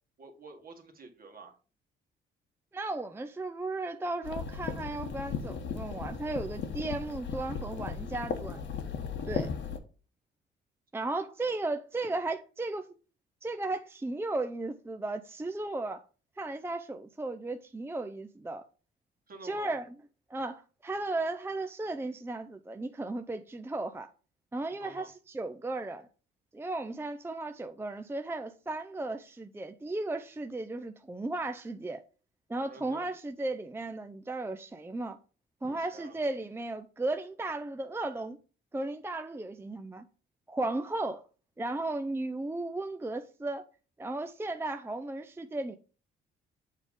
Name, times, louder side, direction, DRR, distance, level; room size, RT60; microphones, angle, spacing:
voice 1, 0.2-1.5 19.3-19.7 24.8-25.1 32.7-33.1 35.6-36.2, right 3 dB, 45° right, 1.7 m, -49 dB
voice 2, 2.7-8.6 9.2-9.5 10.9-12.9 13.4-16.0 16.4-18.6 19.4-19.9 20.3-24.1 24.5-26.1 26.5-32.0 32.5-35.2 35.6-38.4 38.7-40.0 40.5-41.2 41.6-43.6 44.0-45.8, right 2 dB, 10° right, 0.5 m, -35 dB
sound 1, 4.2-9.8, left 6 dB, 70° left, 1.1 m, -36 dB
7.3 x 3.7 x 5.2 m
cardioid pair, 90°, 20 cm